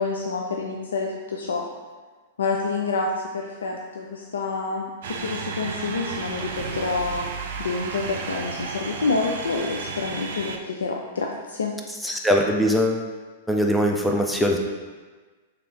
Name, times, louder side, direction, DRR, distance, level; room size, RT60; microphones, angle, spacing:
voice 1, 0.0-1.6 2.4-7.3 7.6-11.7, left 4 dB, 85° left, 0 dB, 0.3 m, -28 dB
sound 1, 5.0-10.6, right 5 dB, 65° right, 0.4 m, -33 dB
voice 2, 12.0-13.0 13.5-14.6, equal, 5° left, 0 dB, 0.5 m, -21 dB
3.2 x 2.9 x 3.8 m, 1.4 s
hypercardioid pair, 120°, 0 cm